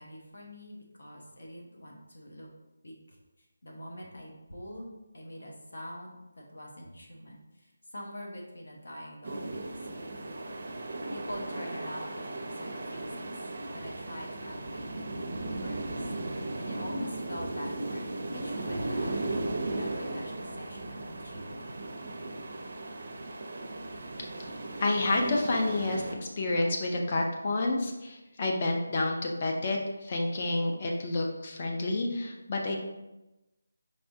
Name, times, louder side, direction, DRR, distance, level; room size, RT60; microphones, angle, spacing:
voice 1, 0.0-2.5 2.8-3.2 3.6-10.7 11.1-13.3 13.7-19.2 19.6-21.8, equal, 65° left, -1 dB, 1.1 m, -45 dB
sound 1, 9.2-26.2, right 2 dB, 35° right, 0.5 m, -36 dB
voice 2, 24.8-32.8, left 2 dB, 25° left, 1 dB, 0.5 m, -29 dB
5.6 x 3.3 x 2.7 m, 1.0 s
figure-of-eight pair, 180°, 0 cm